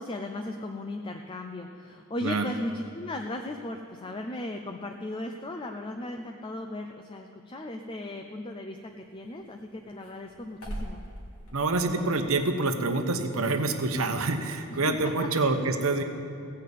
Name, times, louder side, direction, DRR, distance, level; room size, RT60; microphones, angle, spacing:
voice 1, 0.0-11.0 14.8-15.5, left 2 dB, 25° left, 4 dB, 0.5 m, -36 dB
sound 1, 8.8-15.1, right 1 dB, 85° left, 2.8 m, -45 dB
voice 2, 11.5-16.0, right 3 dB, 75° right, 6 dB, 0.9 m, -26 dB
16.5 x 5.7 x 8.3 m, 2.6 s
head